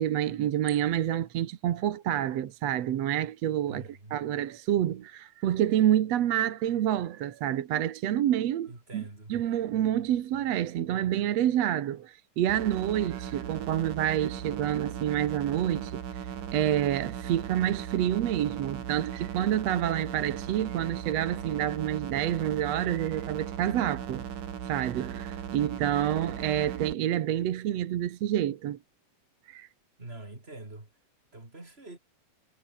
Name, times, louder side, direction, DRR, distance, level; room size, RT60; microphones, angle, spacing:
voice 1, 0.0-9.0 9.3-24.2 24.6-28.8 29.5-29.7, right 11 dB, 65° right, 2.2 m, -28 dB
voice 2, 3.7-4.3 8.7-9.4 30.0-30.9 31.3-32.0, right 2 dB, 20° right, 4.5 m, -45 dB
sound 1, 12.5-26.9, right 8 dB, 85° right, 4.1 m, -38 dB
omnidirectional pair, 3.6 m